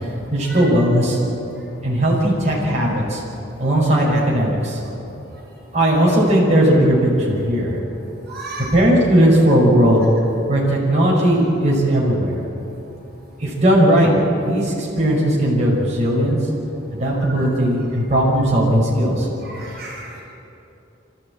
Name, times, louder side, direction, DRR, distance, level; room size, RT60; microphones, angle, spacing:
voice 1, 0.3-1.2 1.8-3.2 3.6-4.8 5.7-7.7 8.7-10.0 10.5-12.3 13.4-14.1 14.4-16.4 16.9-19.3, right 1 dB, 40° right, -5 dB, 5.9 m, -17 dB
voice 2, 8.3-8.7 17.4-17.5 19.4-20.2, right 2 dB, 55° right, -4 dB, 5.7 m, -34 dB
26.5 x 15.0 x 8.8 m, 2.9 s
head